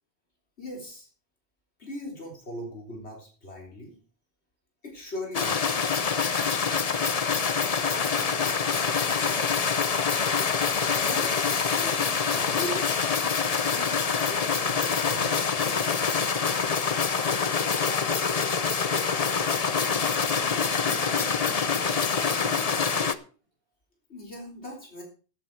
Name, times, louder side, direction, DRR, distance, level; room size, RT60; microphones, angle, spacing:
voice 1, 0.6-1.1 1.8-3.9 4.8-6.0 11.0-11.3 11.7-12.9 13.8-16.0 24.1-25.0, left 1 dB, 80° left, 3.8 m, -39 dB
sound 1, 5.3-23.1, left 6 dB, 40° left, 0.8 m, -25 dB
voice 2, 7.5-9.7 20.3-23.3, right 2 dB, 65° right, 5.5 m, -46 dB
13.0 x 9.4 x 4.6 m
omnidirectional pair, 1.1 m